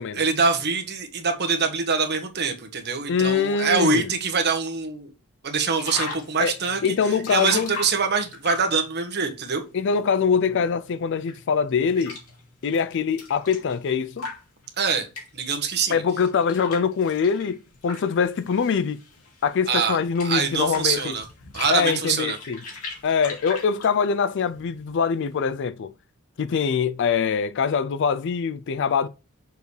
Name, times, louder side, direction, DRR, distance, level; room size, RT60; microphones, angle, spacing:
voice 1, 0.1-5.1 5.4-6.8 7.3-9.6 14.8-15.1 15.3-16.0 19.7-20.0 20.2-21.2 21.5-22.4, right 5 dB, 50° right, 1.3 m, -24 dB
voice 2, 3.1-4.1 6.4-6.5 6.8-7.8 9.7-12.2 12.6-14.3 15.9-19.0 19.4-21.2 21.7-22.6 23.0-25.9 26.4-29.1, left 6 dB, 55° left, 0.4 m, -23 dB
sound 1, 5.8-8.9 9.7-15.5 16.2-25.5, left 4 dB, 75° left, 2.4 m, -39 dB
6.5 x 5.2 x 3.2 m
head